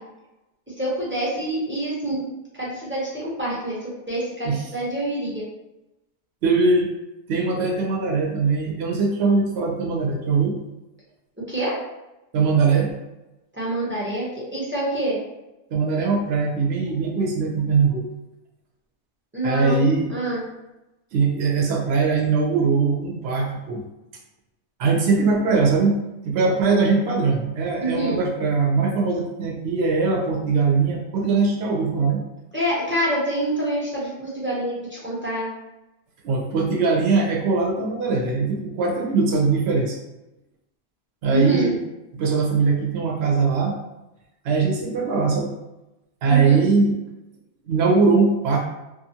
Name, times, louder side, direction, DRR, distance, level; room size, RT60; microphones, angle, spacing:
voice 1, 0.8-5.4 11.5-11.7 13.5-15.2 16.0-16.1 19.3-20.4 27.8-28.2 32.5-35.5 41.3-41.7 46.3-46.6, right 1 dB, 15° right, -8 dB, 0.4 m, -26 dB
voice 2, 6.4-6.9 7.3-10.6 12.3-12.9 15.7-18.0 19.4-20.1 21.1-23.8 24.8-32.2 36.2-40.0 41.2-41.8 42.1-43.8 44.4-45.5 46.2-47.0 47.7-48.6, right 4 dB, 60° right, -1 dB, 0.8 m, -21 dB
2.5 x 2.4 x 2.8 m, 0.97 s
omnidirectional pair, 1.5 m